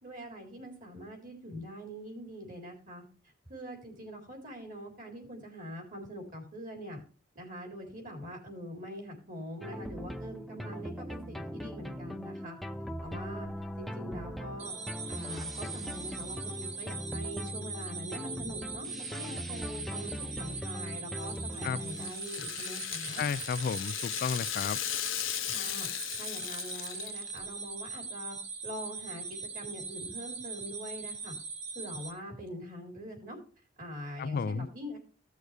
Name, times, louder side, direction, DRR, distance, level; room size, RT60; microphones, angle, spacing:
voice 1, 0.0-3.0 3.5-7.0 7.3-12.6 13.0-13.5 13.8-14.8 15.1-23.2 25.4-28.4 28.6-31.3 31.7-33.4 33.8-35.0, equal, 45° right, 4.0 m, -43 dB
sound 1, 9.6-22.1, equal, ahead, 0.6 m, -40 dB
sound 2, 14.6-32.1, right 4 dB, 90° right, 2.2 m, -41 dB
Rattle (instrument), 21.2-27.4, left 13 dB, 75° left, 0.7 m, -37 dB
voice 2, 23.2-24.8 34.2-34.7, left 5 dB, 50° left, 0.3 m, -32 dB
16.5 x 6.3 x 3.4 m
head